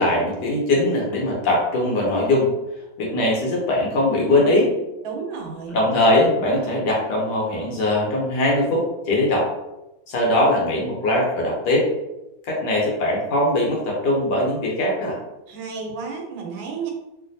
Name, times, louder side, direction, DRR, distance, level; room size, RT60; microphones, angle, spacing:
voice 1, 0.0-2.5 3.0-4.7 5.7-9.5 10.1-11.9 12.4-15.2, left 1 dB, 65° left, -2 dB, 1.3 m, -21 dB
voice 2, 5.0-5.8 15.5-16.9, right 5 dB, 85° right, 1 dB, 1.4 m, -32 dB
3.2 x 2.5 x 2.6 m, 0.96 s
omnidirectional pair, 2.1 m